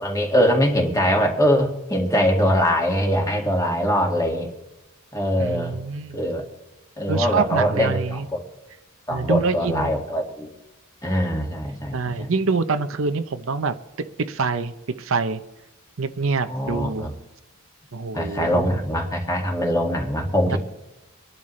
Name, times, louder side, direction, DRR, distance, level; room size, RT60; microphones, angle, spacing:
voice 1, 0.0-4.5 5.1-5.7 6.1-6.4 7.0-8.4 9.1-10.5 11.0-12.3 16.5-17.1 18.1-20.6, equal, 15° left, 0 dB, 2.0 m, -22 dB
voice 2, 5.4-6.2 7.1-8.3 9.1-9.9 11.9-13.8 14.3-14.7 15.0-15.4 16.0-17.1 17.9-18.8 20.5-20.6, right 4 dB, 65° right, 9 dB, 0.7 m, -25 dB
25.5 x 11.0 x 3.2 m, 1.0 s
head